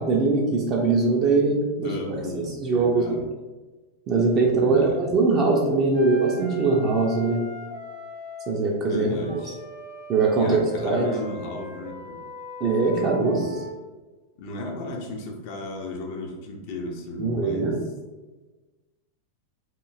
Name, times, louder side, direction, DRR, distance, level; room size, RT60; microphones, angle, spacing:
voice 1, 0.0-3.2 4.1-7.4 8.5-9.4 10.1-11.1 12.6-13.4 17.2-17.8, right 3 dB, 35° right, -2 dB, 0.4 m, -22 dB
voice 2, 1.8-3.3 4.5-5.1 8.9-9.6 10.3-12.2 12.8-13.6 14.4-17.8, left 2 dB, 50° left, 1 dB, 0.4 m, -34 dB
Wind instrument woodwind instrument, 5.9-8.6 9.1-13.7, left 1 dB, 65° right, 0.7 m, -40 dB
2.9 x 2.5 x 2.3 m, 1.2 s
figure-of-eight pair, 90°, 0 cm